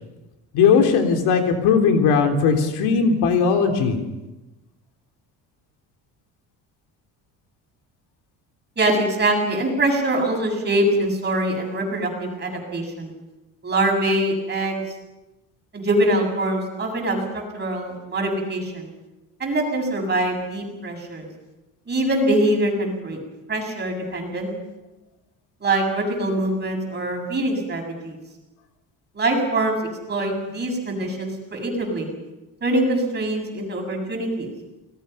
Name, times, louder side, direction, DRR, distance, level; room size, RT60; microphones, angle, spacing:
voice 1, 0.5-4.0, left 6 dB, 85° left, 5 dB, 3.5 m, -18 dB
voice 2, 8.8-13.1 13.6-14.8 15.7-18.9 19.4-21.3 21.9-23.2 23.5-24.5 25.6-28.2 29.1-29.8 30.1-32.1 32.6-34.5, right 1 dB, 25° right, 2 dB, 7.4 m, -23 dB
29.0 x 20.0 x 5.7 m, 1.0 s
cardioid pair, 130°, 38 cm